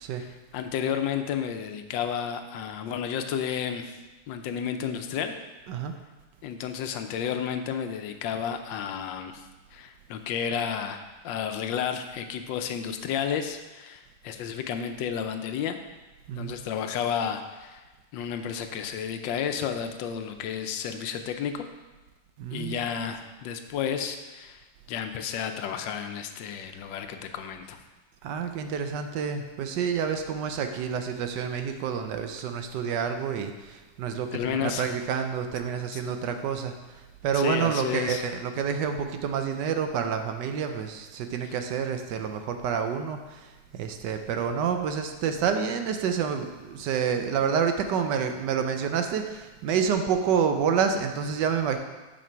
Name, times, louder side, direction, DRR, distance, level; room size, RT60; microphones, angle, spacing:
voice 1, 0.2-4.0 4.3-5.3 6.4-9.4 9.7-15.8 16.3-17.8 18.1-21.7 22.5-27.8 34.3-35.0 35.9-36.2 37.3-38.2, left 8 dB, 80° left, 7 dB, 1.3 m, -32 dB
voice 2, 22.4-22.9 28.2-51.8, right 7 dB, 75° right, 7 dB, 1.2 m, -28 dB
6.7 x 6.3 x 4.5 m, 1.2 s
omnidirectional pair, 2.0 m